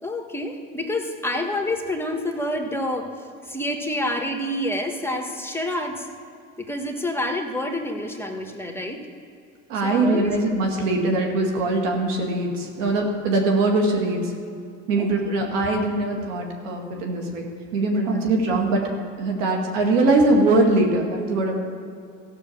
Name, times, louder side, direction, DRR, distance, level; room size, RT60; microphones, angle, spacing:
voice 1, 0.0-3.1 3.4-6.1 6.6-9.0 9.8-10.3 15.0-15.1 19.4-19.5, left 1 dB, 5° left, 4 dB, 1.3 m, -28 dB
voice 2, 9.7-14.3 14.9-17.5 17.7-18.8 19.2-21.6, right 2 dB, 85° right, 1 dB, 2.0 m, -22 dB
14.5 x 6.1 x 7.1 m, 2.4 s
supercardioid pair, 80°, 37 cm